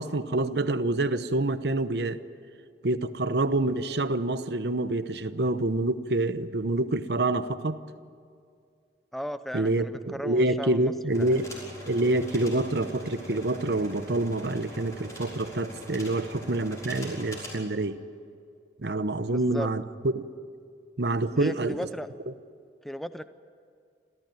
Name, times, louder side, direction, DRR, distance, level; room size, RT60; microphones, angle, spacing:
voice 1, 0.0-2.2 2.8-7.8 9.5-11.5 11.9-18.0 18.8-20.3 21.0-21.8, right 2 dB, 65° right, 11 dB, 0.9 m, -27 dB
voice 2, 9.1-10.9 11.2-11.4 19.2-19.7 21.4-22.1 22.8-23.2, equal, ahead, 12 dB, 0.5 m, -36 dB
sound 1, 11.1-17.5, equal, 15° left, 5.8 m, -42 dB
28.5 x 14.5 x 9.2 m, 2.3 s
head